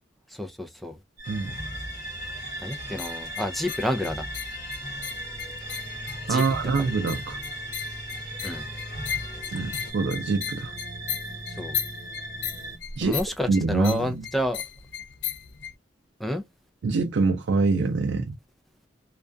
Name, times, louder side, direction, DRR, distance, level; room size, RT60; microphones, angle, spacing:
voice 1, 0.3-1.0 2.6-4.2 6.3-6.4 6.8-7.0 8.4-8.6 11.5-11.8 13.0-14.6 16.2-16.4, left 1 dB, ahead, 0.4 m, -29 dB
sound 1, 1.2-9.9, equal, 50° left, 1.2 m, -42 dB
sound 2, 1.2-12.8, right 1 dB, 45° right, 1.1 m, -38 dB
sound 3, 2.7-15.7, left 9 dB, 70° left, 0.4 m, -37 dB
voice 2, 6.3-7.4 9.5-10.7 13.0-13.2 13.5-14.2 16.8-18.3, right 4 dB, 90° right, 0.4 m, -25 dB
2.3 x 2.2 x 2.4 m
head